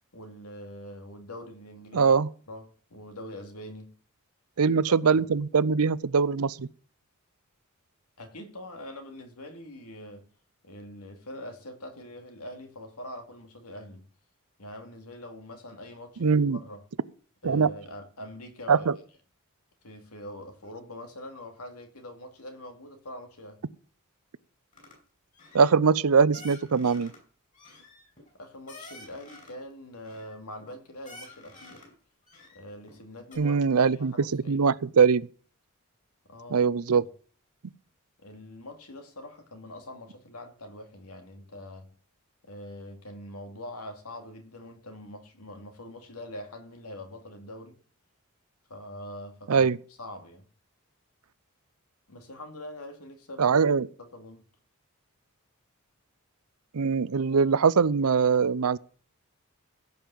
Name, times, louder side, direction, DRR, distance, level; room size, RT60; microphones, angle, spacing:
voice 1, 0.1-2.2 2.5-4.0 4.6-5.2 8.2-10.3 10.6-14.1 14.6-16.8 17.4-18.9 19.8-23.6 28.4-31.9 32.5-33.6 34.0-34.8 36.2-36.6 37.0-37.1 38.2-42.0 42.4-47.8 48.7-49.7 50.0-50.5 52.1-53.6 54.0-54.5, left 1 dB, 85° left, 2.5 m, -44 dB
voice 2, 1.9-2.3 4.6-6.7 16.2-16.6 17.4-17.7 18.7-19.0 25.5-27.1 33.4-35.3 36.5-37.1 49.5-49.8 53.4-53.9 56.7-58.8, right 5 dB, 80° right, 0.6 m, -22 dB
sound 1, 24.7-25.0 25.3-25.7 26.3-27.2 27.5-29.6 30.0-30.7 31.0-31.9 32.3-33.0 33.3-33.4, left 2 dB, 35° left, 5.6 m, -49 dB
16.0 x 5.5 x 7.7 m
head